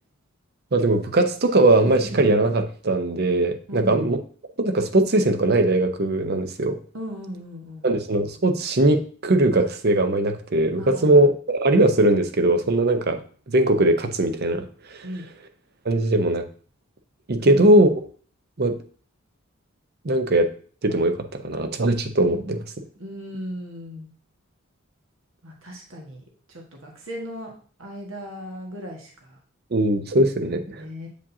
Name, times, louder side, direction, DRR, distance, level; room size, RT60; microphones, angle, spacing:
voice 1, 0.7-4.2 4.6-6.8 7.8-13.2 13.5-14.7 14.9-15.0 15.8-16.4 17.3-17.9 18.6-18.8 20.0-20.5 20.8-21.2 21.4-22.8 29.7-30.8, right 1 dB, 50° right, 8 dB, 0.7 m, -20 dB
voice 2, 3.7-4.0 6.9-7.9 10.8-11.2 15.0-15.2 17.4-17.6 23.0-24.1 25.4-27.5 27.8-29.4 30.8-31.1, equal, 70° right, 0 dB, 1.6 m, -37 dB
8.5 x 5.1 x 2.7 m, 0.43 s
head